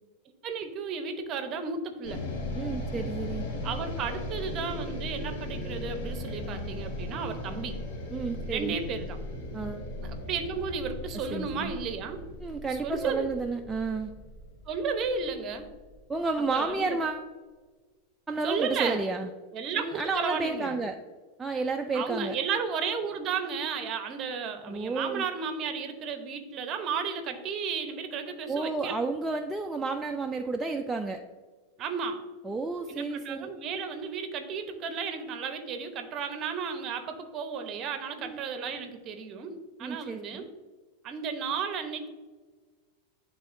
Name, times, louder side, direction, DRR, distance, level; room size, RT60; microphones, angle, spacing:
voice 1, 0.4-2.2 3.6-7.8 8.5-9.2 10.0-12.2 12.7-13.3 14.7-15.7 16.5-17.0 18.4-19.0 19.5-20.8 21.9-28.9 31.8-32.2 32.9-40.5 41.0-42.1, right 5 dB, 35° right, 7 dB, 0.8 m, -33 dB
sound 1, 2.0-16.3, left 1 dB, 55° left, 1.5 m, -37 dB
voice 2, 2.5-3.4 8.1-8.8 9.5-9.9 11.3-11.7 12.4-14.1 16.1-17.3 18.3-19.3 19.8-21.0 21.4-22.4 24.7-25.2 28.5-31.2 32.4-33.5 38.2-38.4 39.8-40.5, right 3 dB, 10° right, 2 dB, 0.3 m, -31 dB
10.0 x 3.6 x 2.6 m, 1.4 s
supercardioid pair, 140°, 0 cm